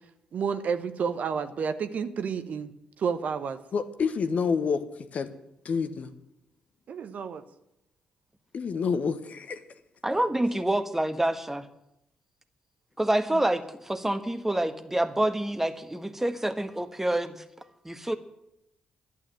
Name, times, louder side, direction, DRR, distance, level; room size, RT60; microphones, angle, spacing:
voice 1, 0.3-2.7 3.0-3.6 6.9-7.4 10.1-10.2, right 6 dB, 55° right, 10 dB, 1.0 m, -30 dB
voice 2, 3.7-4.9 5.1-5.3 5.6-6.1 8.5-9.6, left 5 dB, 50° left, 10 dB, 1.1 m, -28 dB
voice 3, 10.0-11.7 13.0-17.4 17.8-18.2, right 1 dB, 10° right, 9 dB, 1.4 m, -27 dB
11.5 x 8.6 x 9.0 m, 0.83 s
figure-of-eight pair, 40°, 3 cm